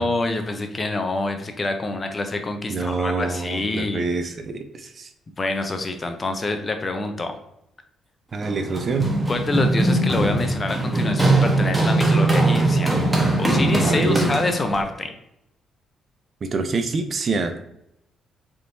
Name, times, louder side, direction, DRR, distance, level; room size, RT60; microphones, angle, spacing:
voice 1, 0.0-4.1 5.4-7.4 9.3-13.0 13.4-15.1, left 2 dB, 30° left, 6 dB, 0.6 m, -26 dB
voice 2, 2.7-5.1 8.3-9.2 13.8-14.4 16.4-17.5, right 3 dB, 45° right, 8 dB, 0.5 m, -26 dB
Run, 8.4-14.8, right 2 dB, 15° right, 1.0 m, -20 dB
4.0 x 3.6 x 2.6 m, 0.80 s
cardioid pair, 90°, 0 cm